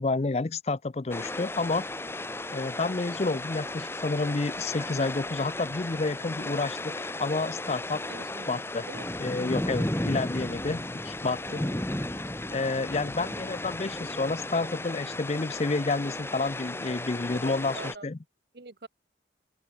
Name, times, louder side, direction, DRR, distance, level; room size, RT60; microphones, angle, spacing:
voice 1, 0.0-1.8 2.5-8.0 8.5-8.8 9.2-11.4 12.5-18.2, left 3 dB, 35° left, 0.5 m, -29 dB
sound 1, 1.1-18.0, left 1 dB, 15° left, 1.3 m, -35 dB
voice 2, 8.1-9.1 9.6-10.1 11.4-11.8 13.2-13.4 17.7-18.1 18.5-18.9, right 3 dB, 60° right, 1.0 m, -46 dB
open air
head